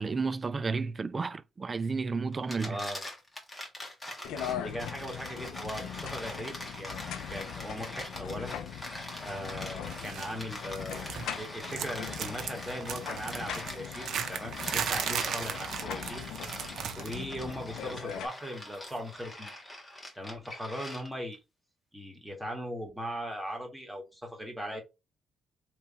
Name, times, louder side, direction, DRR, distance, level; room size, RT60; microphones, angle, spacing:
voice 1, 0.0-2.8, right 4 dB, 30° right, 0.4 m, -32 dB
sound 1, 2.3-21.4, left 1 dB, 15° left, 1.5 m, -43 dB
voice 2, 2.6-3.0 4.6-8.5 9.2-16.2 17.0-19.5 20.2-21.4 21.9-24.8, equal, 5° right, 1.7 m, -39 dB
sound 2, 4.2-18.3, left 9 dB, 85° left, 0.5 m, -41 dB
sound 3, 9.9-10.3 10.6-11.4 11.7-17.3 17.5-17.8 18.9-19.0, right 8 dB, 70° right, 0.6 m, -36 dB
3.4 x 3.1 x 4.3 m
cardioid pair, 90°, 0 cm